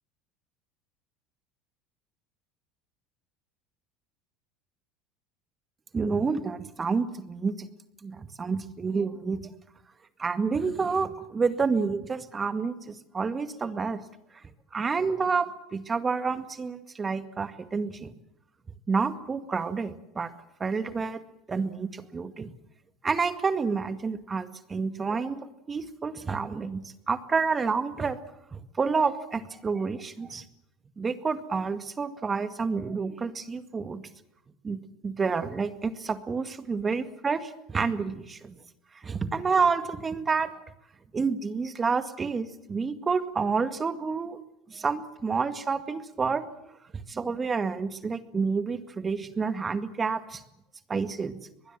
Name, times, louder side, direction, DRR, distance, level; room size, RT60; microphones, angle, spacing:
voice 1, 5.9-7.7 8.0-9.4 10.2-14.0 14.7-18.1 18.9-20.3 20.6-21.2 21.5-22.5 23.0-28.2 28.5-30.4 31.0-34.0 34.6-38.6 39.0-40.5 41.1-44.4 44.7-46.4 47.1-50.4 50.9-51.4, right 5 dB, 25° right, 11 dB, 2.0 m, -29 dB
23.5 x 20.5 x 7.5 m, 0.88 s
supercardioid pair, 95°, 0 cm